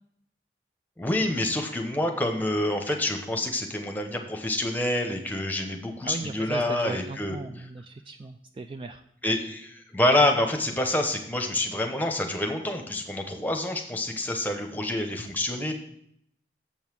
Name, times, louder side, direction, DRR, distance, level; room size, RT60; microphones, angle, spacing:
voice 1, 1.0-7.4 9.2-15.7, left 1 dB, 10° left, 3 dB, 0.9 m, -27 dB
voice 2, 6.0-9.0, right 3 dB, 30° right, 7 dB, 0.3 m, -37 dB
7.2 x 5.5 x 6.1 m, 0.71 s
head